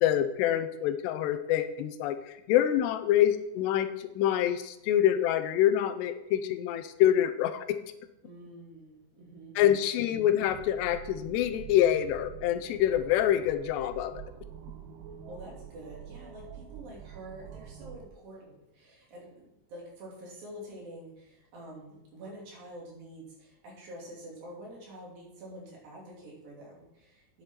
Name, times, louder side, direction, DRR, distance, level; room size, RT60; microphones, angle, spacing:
voice 1, 0.0-7.8 9.6-14.1, left 11 dB, 85° left, 10 dB, 2.8 m, -26 dB
voice 2, 8.2-9.6 15.2-27.4, right 1 dB, 60° right, -4 dB, 4.5 m, -47 dB
sound 1, 10.5-18.1, right 9 dB, 75° right, 2.2 m, -46 dB
9.4 x 8.3 x 4.4 m, 0.87 s
omnidirectional pair, 4.9 m